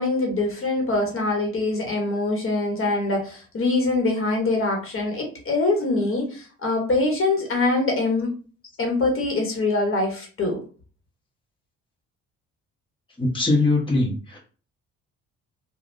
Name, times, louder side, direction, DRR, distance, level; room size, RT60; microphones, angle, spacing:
voice 1, 0.0-8.3 8.8-10.6, left 2 dB, 45° left, 1 dB, 1.2 m, -24 dB
voice 2, 13.2-14.4, left 2 dB, 15° left, -3 dB, 1.1 m, -21 dB
3.4 x 2.3 x 2.6 m, 0.38 s
cardioid pair, 90°, 30 cm